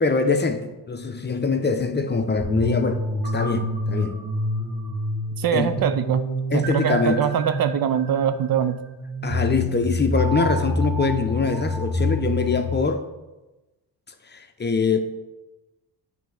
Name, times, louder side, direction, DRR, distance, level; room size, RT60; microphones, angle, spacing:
voice 1, 0.0-3.0 3.3-4.2 5.5-5.7 6.5-7.3 9.2-13.0 14.3-15.0, left 4 dB, 25° left, 6 dB, 0.8 m, -23 dB
sound 1, 2.4-12.7, left 1 dB, 85° right, 1.6 m, -27 dB
voice 2, 5.4-6.2 6.5-8.8, right 8 dB, 60° right, 11 dB, 0.6 m, -23 dB
9.0 x 3.5 x 6.5 m, 1.1 s
cardioid pair, 90°, 40 cm